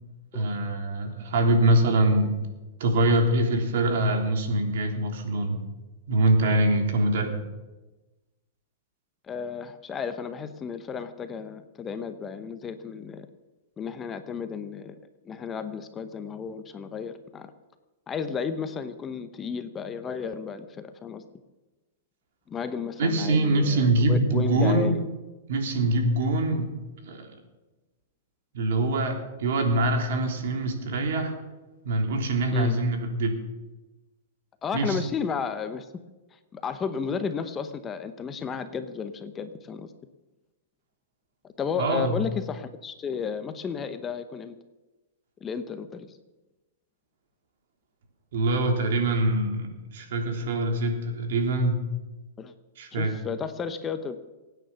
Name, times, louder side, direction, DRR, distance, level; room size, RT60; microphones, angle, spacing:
voice 1, 0.3-2.3 2.8-5.6 6.1-7.4 23.0-24.9 25.5-26.7 27.0-27.3 28.5-29.1 29.4-31.3 31.8-33.4 34.7-35.0 41.8-42.2 48.3-51.8 52.8-53.1, right 1 dB, 70° right, 3 dB, 3.4 m, -24 dB
voice 2, 9.3-13.3 13.8-14.9 15.2-17.5 18.1-21.2 22.5-25.1 32.5-32.8 34.6-35.9 36.3-39.9 41.6-44.6 45.4-46.2 52.4-52.5 52.9-54.3, left 6 dB, 20° left, 9 dB, 0.9 m, -33 dB
24.0 x 9.3 x 5.8 m, 1.1 s
hypercardioid pair, 150°, 0 cm